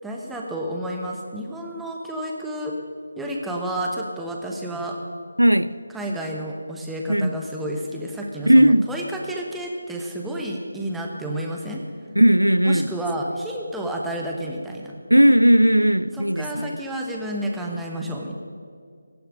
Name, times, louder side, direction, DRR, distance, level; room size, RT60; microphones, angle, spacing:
voice 1, 0.0-2.7 3.2-5.0 5.9-11.8 12.6-14.9 16.2-18.4, right 1 dB, 5° right, 1.1 m, -30 dB
voice 2, 5.4-5.8 7.1-7.3 8.5-8.9 12.2-12.9 15.1-16.8, equal, 90° right, 0.4 m, -16 dB
17.0 x 11.0 x 5.1 m
figure-of-eight pair, 155°, 0 cm